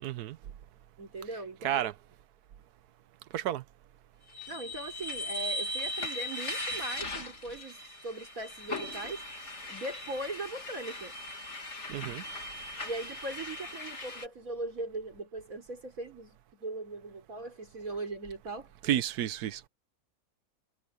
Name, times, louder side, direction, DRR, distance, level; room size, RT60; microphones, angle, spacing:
voice 1, 0.0-0.4 1.6-1.9 3.3-3.6 11.9-12.2 18.8-19.6, right 11 dB, 90° right, 1.3 m, -31 dB
voice 2, 1.0-1.8 4.5-7.8 8.0-9.2 9.7-11.1 12.8-18.7, right 2 dB, 65° right, 4.8 m, -39 dB
sound 1, 4.3-14.3, left 1 dB, 50° left, 2.7 m, -39 dB
omnidirectional pair, 1.6 m